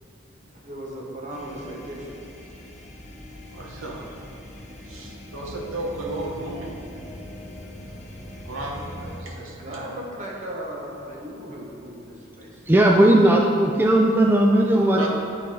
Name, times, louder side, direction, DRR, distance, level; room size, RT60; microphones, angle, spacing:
voice 1, 0.5-2.2 9.6-12.6, right 1 dB, 40° right, -3 dB, 1.2 m, -37 dB
sound 1, 1.3-9.2, left 1 dB, 35° left, 0.9 m, -41 dB
voice 2, 3.5-4.1 4.3-4.5 4.8-6.8 8.4-9.9 14.9-15.1, right 2 dB, 70° right, -2 dB, 1.1 m, -34 dB
voice 3, 12.7-15.1, right 1 dB, 10° right, 0 dB, 0.3 m, -17 dB
11.0 x 4.0 x 3.8 m, 2.6 s
head